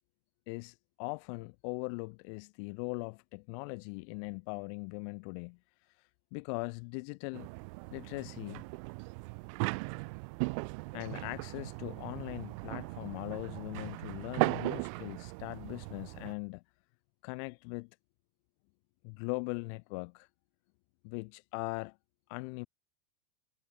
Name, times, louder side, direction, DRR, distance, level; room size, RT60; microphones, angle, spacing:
voice 1, 0.5-5.6 6.0-7.5 7.9-8.7 10.9-16.6 17.2-17.9 19.0-20.3 21.0-22.0 22.3-22.7, left 36 dB, 50° left, 5.6 m, -40 dB
sound 1, 7.3-16.3, right 31 dB, 50° right, 1.1 m, -38 dB
supercardioid pair, 155°, 21 cm